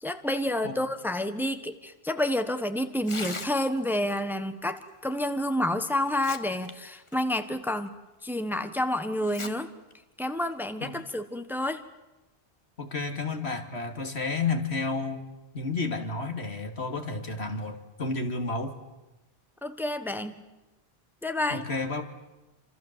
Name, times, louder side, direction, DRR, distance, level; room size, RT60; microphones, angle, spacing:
voice 1, 0.0-7.9 8.2-9.7 10.2-11.8 19.6-20.4 21.2-21.6, left 1 dB, ahead, 9 dB, 1.4 m, -29 dB
Tearing, 2.9-3.9 5.4-5.5 6.0-6.7 7.1-7.2 7.9-8.0 9.2-9.5 9.9-10.0 10.8-11.1, left 2 dB, 30° left, 1.4 m, -39 dB
voice 2, 12.8-18.8 21.5-22.0, left 3 dB, 75° left, 5 dB, 3.0 m, -31 dB
28.0 x 26.5 x 7.6 m, 1.0 s
omnidirectional pair, 1.1 m